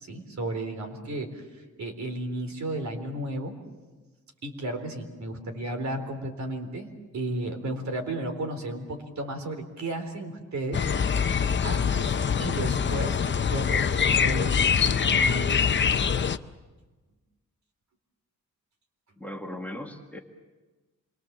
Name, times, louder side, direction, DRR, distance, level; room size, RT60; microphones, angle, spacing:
voice 1, 0.1-1.4 1.8-3.6 4.4-10.9 11.3-12.1 12.4-15.6, right 1 dB, 65° right, 6 dB, 4.0 m, -34 dB
sound 1, 10.7-16.4, left 6 dB, 40° left, 0.7 m, -24 dB
voice 2, 19.2-20.2, left 1 dB, 5° left, 2 dB, 1.9 m, -38 dB
27.5 x 23.5 x 7.5 m, 1.2 s
wide cardioid pair, 125°, 30 cm